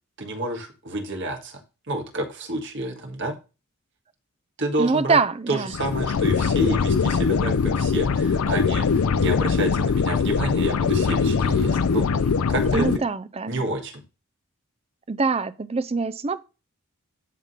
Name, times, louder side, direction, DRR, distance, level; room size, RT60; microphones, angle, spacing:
voice 1, 0.2-1.6 1.9-3.3 4.6-5.2 5.5-12.1 12.5-12.9 13.5-14.0, right 1 dB, 55° right, 1.6 m, -29 dB
voice 2, 4.8-5.7 12.7-13.6 15.1-16.4, right 4 dB, 25° right, 0.5 m, -24 dB
sound 1, 5.7-13.0, left 5 dB, 80° left, 0.5 m, -22 dB
10.5 x 3.8 x 5.6 m
head